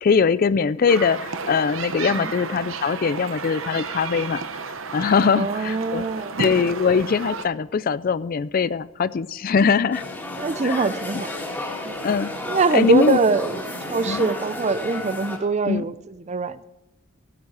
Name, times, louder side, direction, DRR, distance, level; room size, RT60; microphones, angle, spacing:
voice 1, 0.0-4.4 4.9-6.0 6.4-10.0 10.6-10.9 12.0-12.3 12.7-13.2 14.1-14.3 15.7-15.8, left 5 dB, 40° left, 17 dB, 0.3 m, -21 dB
sound 1, 0.9-7.4, right 4 dB, 65° right, 1.0 m, -32 dB
voice 2, 2.0-2.3 5.2-6.4 10.3-11.4 11.8-12.0 12.4-16.6, right 4 dB, 30° right, 15 dB, 0.4 m, -23 dB
sound 2, 9.9-15.4, left 2 dB, 10° left, 2.2 m, -32 dB
15.5 x 9.4 x 4.7 m, 1.0 s
head